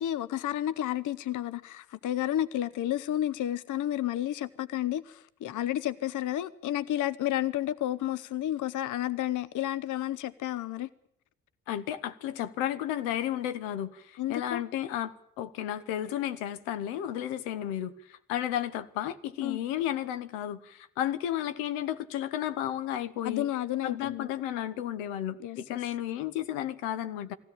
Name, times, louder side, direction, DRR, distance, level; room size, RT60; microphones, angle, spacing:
voice 1, 0.0-10.9 14.2-14.6 19.4-19.6 23.2-24.3 25.4-25.8, left 12 dB, 45° left, 0.8 m, -31 dB
voice 2, 11.7-23.5 23.8-27.3, left 11 dB, 70° left, 1.1 m, -33 dB
21.0 x 16.0 x 8.8 m
figure-of-eight pair, 45°, 42 cm